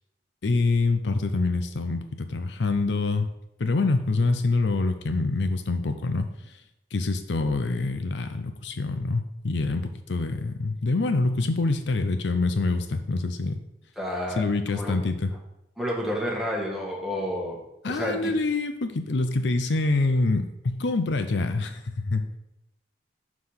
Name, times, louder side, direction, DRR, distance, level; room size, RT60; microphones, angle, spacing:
voice 1, 0.4-3.3 3.6-6.3 6.9-13.6 14.4-15.3 17.8-22.4, left 3 dB, 75° left, 8 dB, 0.6 m, -26 dB
voice 2, 14.0-14.4 14.7-14.9 15.8-17.6 17.8-18.4, equal, ahead, -3 dB, 1.5 m, -30 dB
5.7 x 4.9 x 5.7 m, 0.87 s
head